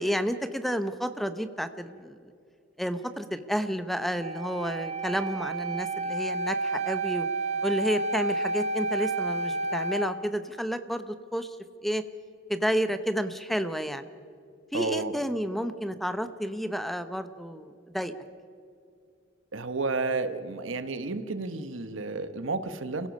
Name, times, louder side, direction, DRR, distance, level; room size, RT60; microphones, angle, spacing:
voice 1, 0.0-2.2 2.8-7.3 7.6-11.5 11.8-12.0 12.5-14.0 14.7-18.1, equal, ahead, 10 dB, 0.8 m, -30 dB
Wind instrument woodwind instrument, 4.2-10.1, right 3 dB, 35° right, 1.1 m, -30 dB
voice 2, 14.7-15.2 19.5-23.1, right 3 dB, 80° right, 11 dB, 1.1 m, -31 dB
29.5 x 16.5 x 5.3 m, 2.3 s
head